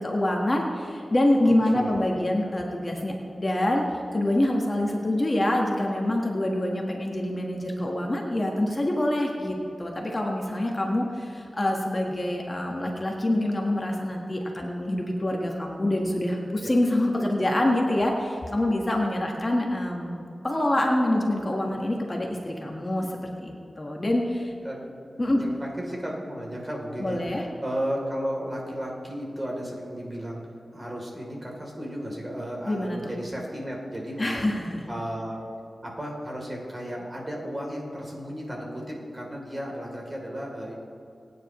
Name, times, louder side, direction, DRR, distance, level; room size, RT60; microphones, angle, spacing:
voice 1, 0.0-24.5 25.2-25.4 27.0-27.5 32.7-33.0 34.2-34.9, left 1 dB, 30° left, 0 dB, 1.4 m, -26 dB
voice 2, 1.4-2.1 2.4-2.7 16.6-16.7 24.6-24.9 25.4-30.4 30.7-34.5 34.9-35.4 35.8-40.7, equal, 25° right, -2 dB, 3.2 m, -34 dB
21.5 x 9.6 x 3.1 m, 2.6 s
wide cardioid pair, 70°, 0 cm